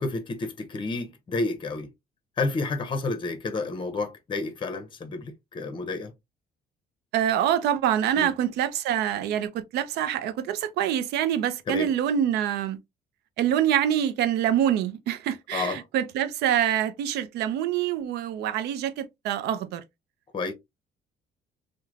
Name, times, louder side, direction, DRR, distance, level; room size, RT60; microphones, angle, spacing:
voice 1, 0.0-1.9 2.4-6.1 8.2-8.3 11.7-11.9 15.5-15.8 20.3-20.5, left 3 dB, 30° left, 0.7 m, -30 dB
voice 2, 7.1-12.8 13.4-19.8, right 10 dB, 75° right, 0.5 m, -25 dB
3.1 x 2.1 x 2.3 m
cardioid pair, 110°, 17 cm